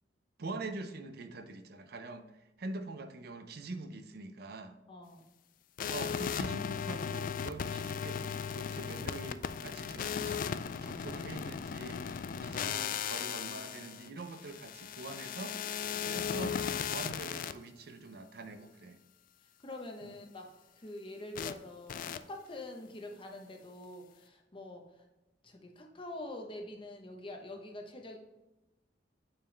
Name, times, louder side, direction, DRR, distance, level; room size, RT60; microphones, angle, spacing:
voice 1, 0.4-2.3 2.6-4.8 5.9-10.4 10.8-15.6 16.0-16.6 16.9-19.0 20.0-20.1, right 2 dB, 55° right, 8 dB, 0.6 m, -44 dB
voice 2, 4.9-5.2 12.5-12.7 15.9-16.2 19.6-20.5 20.8-25.1 25.4-28.2, left 1 dB, 30° left, 3 dB, 0.9 m, -45 dB
sound 1, 5.8-17.5 21.4-21.5 21.9-22.2, left 7 dB, 45° left, 0.3 m, -37 dB
8.7 x 4.5 x 3.3 m, 0.99 s
head